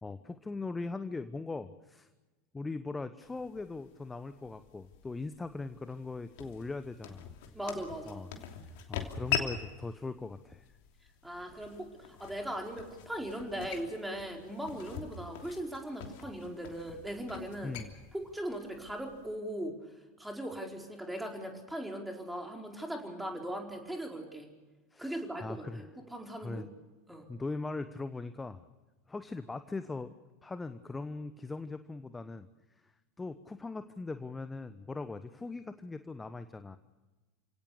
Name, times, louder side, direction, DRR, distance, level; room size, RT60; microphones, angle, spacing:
voice 1, 0.0-2.1 2.5-7.3 8.0-8.3 8.6-10.7 17.6-17.9 24.9-25.9 26.3-26.7 27.3-28.6 29.1-30.1 30.4-32.5 32.8-32.9 33.2-36.8, left 3 dB, 15° left, 11 dB, 1.0 m, -40 dB
sound 1, 3.2-19.3, left 9 dB, 55° left, 3.0 m, -43 dB
voice 2, 7.5-8.2 11.2-11.9 12.2-17.7 18.1-19.7 20.2-24.5 25.0-26.7 27.1-27.3, right 1 dB, 5° right, 2 dB, 4.7 m, -39 dB
29.5 x 17.5 x 6.6 m, 1.2 s
figure-of-eight pair, 80°, 0 cm